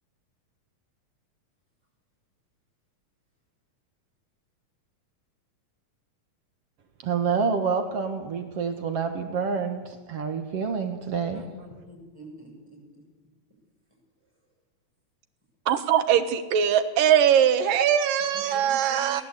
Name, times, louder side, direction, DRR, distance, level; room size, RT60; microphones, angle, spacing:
voice 1, 7.0-11.4, right 5 dB, 50° right, 7 dB, 2.2 m, -28 dB
voice 2, 11.3-13.0 18.2-19.2, right 1 dB, 5° right, 0 dB, 7.7 m, -45 dB
voice 3, 15.7-19.2, right 9 dB, 75° right, 10 dB, 3.0 m, -21 dB
23.5 x 18.5 x 8.4 m, 1.3 s
omnidirectional pair, 4.0 m